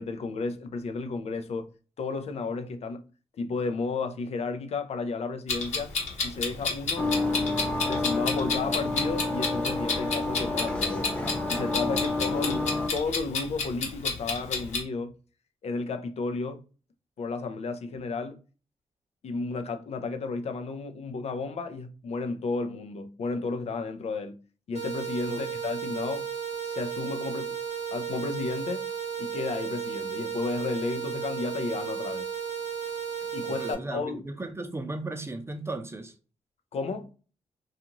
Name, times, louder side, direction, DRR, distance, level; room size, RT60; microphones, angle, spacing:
voice 1, 0.0-1.7 2.0-3.0 3.4-5.9 6.2-7.1 7.8-11.1 11.5-15.1 15.6-16.6 17.2-18.4 19.2-24.4 24.7-26.3 26.6-27.6 27.9-28.9 29.2-32.3 33.3-34.2 36.7-37.1, left 4 dB, 60° left, 0.5 m, -33 dB
Clock, 5.5-14.8, left 4 dB, 80° left, 0.9 m, -30 dB
sound 1, 7.0-12.9, left 2 dB, 10° left, 0.8 m, -29 dB
voice 2, 11.9-12.4 25.3-25.4 33.4-36.1, right 2 dB, 20° right, 0.6 m, -36 dB
sound 2, 24.7-33.7, right 7 dB, 65° right, 0.8 m, -34 dB
2.4 x 2.4 x 2.9 m
cardioid pair, 55°, 12 cm